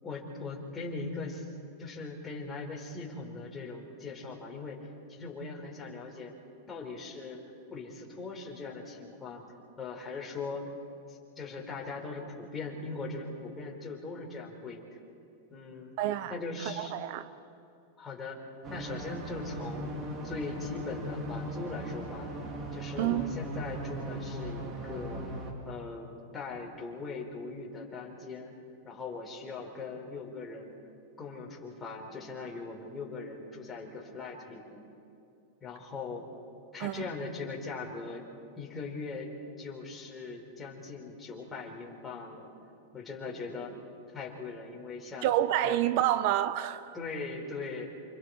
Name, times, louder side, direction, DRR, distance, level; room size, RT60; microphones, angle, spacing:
voice 1, 0.0-1.5 1.8-6.3 6.7-7.4 7.7-9.5 9.8-10.7 11.1-14.8 15.5-16.0 16.3-16.9 18.0-18.4 18.7-22.3 22.7-25.2 25.6-28.5 28.8-30.8 31.2-34.9 35.6-36.2 36.7-38.2 38.6-42.5 42.9-43.7 44.1-45.3 45.6-45.8 46.9-47.9, left 3 dB, 15° left, 4.4 m, -40 dB
voice 2, 16.0-16.3 16.6-17.3 23.0-23.3 36.8-37.1 45.2-47.0, right 13 dB, 55° right, 1.1 m, -28 dB
sound 1, 18.6-25.5, right 1 dB, 30° right, 3.5 m, -38 dB
29.0 x 27.0 x 4.8 m
supercardioid pair, 130°, 0 cm